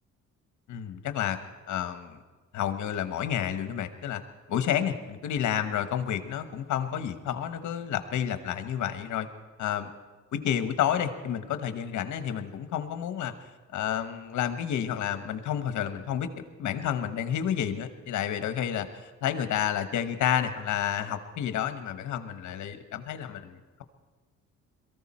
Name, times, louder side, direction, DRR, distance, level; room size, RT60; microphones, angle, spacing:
voice 1, 0.7-1.4 1.7-2.2 2.5-4.2 4.5-9.3 9.6-9.9 10.3-13.3 13.7-16.3 16.6-18.9 19.2-23.8, left 9 dB, 75° left, 9 dB, 1.3 m, -30 dB
22.5 x 14.5 x 4.4 m, 1.3 s
cardioid pair, 90°, 30 cm